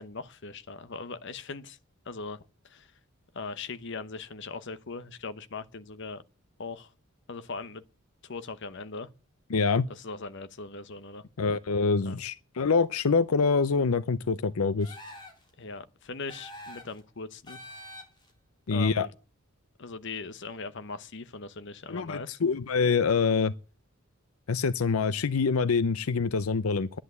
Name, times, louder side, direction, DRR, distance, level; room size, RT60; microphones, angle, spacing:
voice 1, 0.0-1.8 2.1-2.4 2.7-2.9 3.3-6.2 6.6-6.9 7.3-7.8 8.2-9.1 9.9-11.2 12.0-12.1 15.6-17.6 18.7-19.1 19.8-22.4, left 4 dB, 55° left, 0.9 m, -40 dB
voice 2, 9.5-9.9 11.4-15.0 18.7-19.1 21.9-23.5 24.5-27.0, left 4 dB, 80° left, 0.6 m, -25 dB
sound 1, 14.8-15.5 16.3-17.0 17.5-18.3, left 1 dB, 20° left, 3.6 m, -45 dB
11.0 x 10.0 x 8.2 m
head